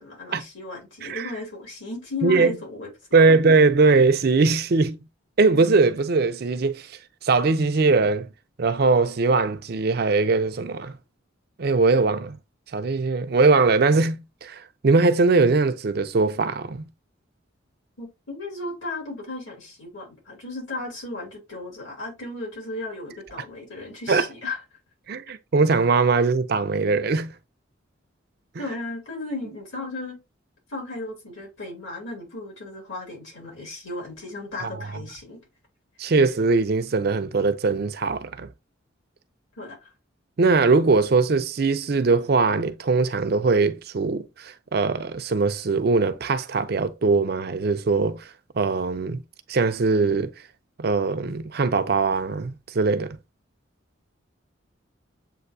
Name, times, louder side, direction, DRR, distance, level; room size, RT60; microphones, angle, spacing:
voice 1, 0.0-2.9 18.0-24.6 28.6-30.2 30.7-35.4 39.6-39.9, left 2 dB, 70° left, 2.8 m, -35 dB
voice 2, 2.2-2.6 3.1-5.0 5.4-6.9 7.2-8.3 8.6-10.9 11.6-12.4 12.7-16.8 24.1-24.2 25.1-27.3 34.6-34.7 36.0-38.5 40.4-48.3 48.6-49.2 49.5-50.3 50.8-53.2, right 4 dB, 50° right, 0.4 m, -21 dB
7.6 x 2.6 x 2.6 m
head